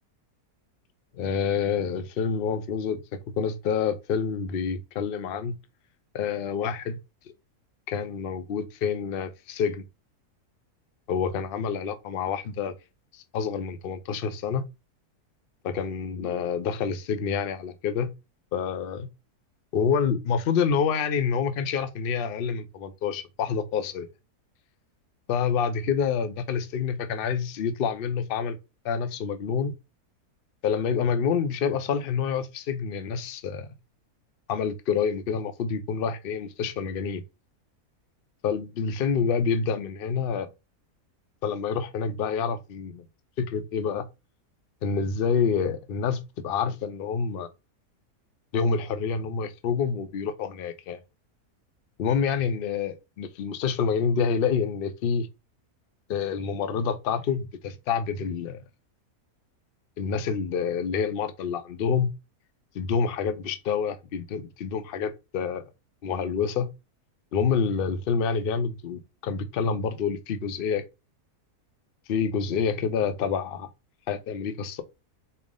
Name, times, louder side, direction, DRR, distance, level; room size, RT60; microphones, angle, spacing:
voice 1, 1.1-3.0 3.4-5.5 6.1-7.0 7.9-9.9 11.1-12.7 13.1-14.6 15.6-18.1 18.5-19.1 19.7-24.1 25.3-28.6 28.8-29.7 30.6-33.7 34.5-37.2 38.4-40.5 41.4-43.0 43.4-44.0 44.8-47.5 48.5-51.0 52.0-55.3 56.1-58.6 60.0-62.1 62.7-65.6 66.0-66.7 67.3-70.8 72.1-73.7 74.1-74.8, left 6 dB, 60° left, 0.6 m, -27 dB
4.2 x 3.5 x 3.7 m
omnidirectional pair, 1.6 m